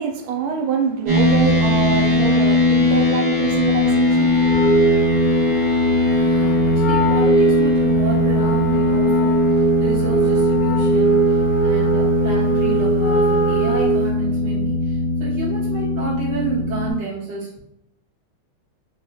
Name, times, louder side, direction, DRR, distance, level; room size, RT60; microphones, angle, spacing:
voice 1, 0.0-4.6, right 6 dB, 90° right, 1.5 m, -25 dB
sound 1, 1.1-16.9, left 2 dB, 60° right, 2.0 m, -19 dB
Wind instrument woodwind instrument, 4.3-14.1, right 4 dB, 70° left, 1.0 m, -21 dB
voice 2, 6.0-17.6, right 4 dB, 40° right, 1.4 m, -30 dB
4.6 x 2.3 x 2.7 m
omnidirectional pair, 2.4 m